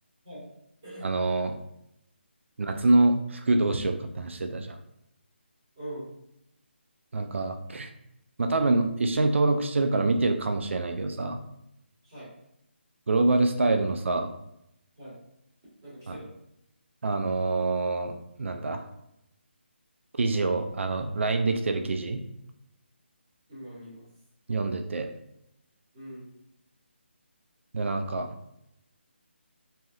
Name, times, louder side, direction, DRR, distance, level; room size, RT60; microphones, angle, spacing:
voice 1, 1.0-1.6 2.6-4.8 7.1-7.9 8.4-11.4 13.1-14.3 16.1-16.2 17.0-18.1 18.4-18.9 20.2-22.2 24.5-25.1 27.7-28.3, right 2 dB, 80° right, 6 dB, 0.4 m, -26 dB
voice 2, 5.8-6.1 12.0-12.3 15.0-15.2 15.8-16.3 23.5-24.0 25.9-26.3, right 1 dB, 20° right, -8 dB, 1.2 m, -42 dB
3.2 x 2.7 x 2.3 m, 0.80 s
hypercardioid pair, 175°, 7 cm